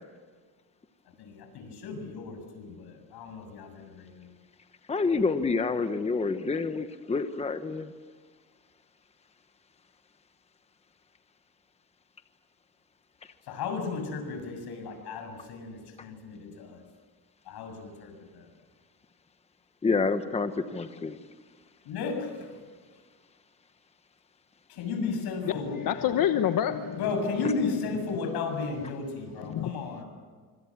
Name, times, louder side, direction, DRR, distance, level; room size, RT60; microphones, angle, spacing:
voice 1, 1.2-4.3 13.4-16.8 17.5-18.5 21.8-22.6 24.7-25.8 26.9-30.1, left 4 dB, 90° left, 5 dB, 7.2 m, -34 dB
voice 2, 4.9-7.9 19.8-21.2, left 4 dB, 15° left, 9 dB, 1.1 m, -28 dB
voice 3, 25.4-27.2 29.4-29.8, left 10 dB, 60° left, 8 dB, 1.2 m, -28 dB
25.5 x 25.5 x 7.4 m, 1.5 s
cardioid pair, 145°, 38 cm